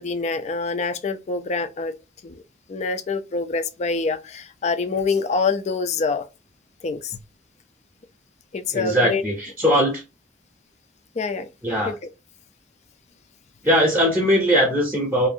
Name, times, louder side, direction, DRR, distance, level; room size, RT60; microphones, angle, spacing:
voice 1, 0.0-1.9 2.2-2.4 2.7-6.2 6.8-7.2 8.5-9.2 11.2-11.5 11.9-12.0, left 4 dB, 40° left, 0.3 m, -25 dB
voice 2, 8.7-10.0 11.6-11.9 13.6-15.3, equal, 10° right, 0.7 m, -20 dB
2.6 x 2.4 x 2.5 m
head